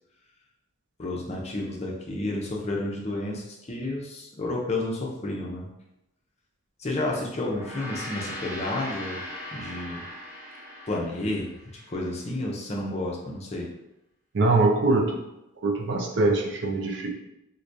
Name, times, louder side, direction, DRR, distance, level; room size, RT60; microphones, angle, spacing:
voice 1, 1.0-5.7 6.8-9.2 9.5-10.1 10.9-11.5 11.9-13.7, left 2 dB, 30° left, -2 dB, 0.5 m, -31 dB
Gong, 7.4-12.0, left 1 dB, 10° right, 0.6 m, -39 dB
voice 2, 14.3-15.2 15.6-17.1, right 2 dB, 55° right, 1 dB, 0.5 m, -23 dB
4.7 x 2.2 x 2.6 m, 0.89 s
head